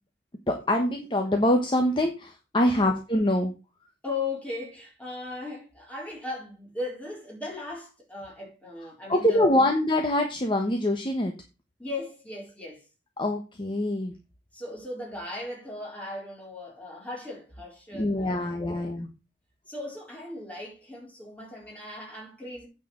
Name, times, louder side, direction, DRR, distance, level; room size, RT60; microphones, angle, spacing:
voice 1, 0.5-3.5 9.1-11.3 13.2-14.1 17.9-19.1, left 1 dB, 25° left, 1.1 m, -24 dB
voice 2, 4.0-9.6 11.8-12.9 14.5-18.9 19.7-22.7, left 2 dB, 10° left, 4.0 m, -37 dB
9.0 x 4.8 x 6.2 m
head